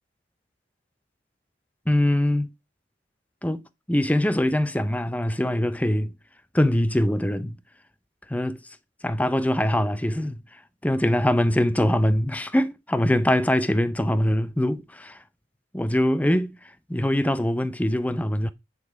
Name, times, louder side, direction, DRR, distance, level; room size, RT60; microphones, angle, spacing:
voice 1, 1.9-2.5 3.4-3.6 3.9-6.1 6.5-7.6 8.3-8.6 9.0-10.4 10.8-15.2 15.7-16.6 16.9-18.5, left 1 dB, 10° left, 0.6 m, -23 dB
9.6 x 4.0 x 4.9 m
head